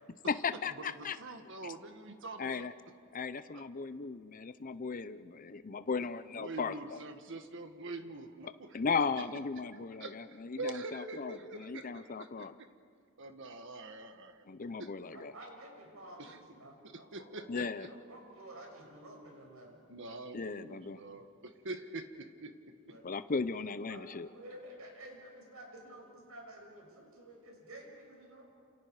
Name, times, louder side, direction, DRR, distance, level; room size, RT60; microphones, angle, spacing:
voice 1, 0.3-1.2 1.6-1.7 2.4-2.7 3.1-7.0 8.7-12.6 14.5-15.3 17.5-17.9 20.3-21.0 23.0-24.3, left 5 dB, 40° left, 12 dB, 0.6 m, -36 dB
voice 2, 0.8-2.7 3.5-3.6 6.0-6.1 6.3-8.8 10.0-12.7 13.2-14.5 14.8-14.9 16.2-16.4 16.8-17.9 19.9-22.7, right 2 dB, 60° right, 7 dB, 1.7 m, -45 dB
voice 3, 15.1-19.8 22.9-23.0 23.9-28.4, right 1 dB, 85° right, 0 dB, 6.5 m, -51 dB
29.0 x 28.5 x 4.9 m, 2.3 s
head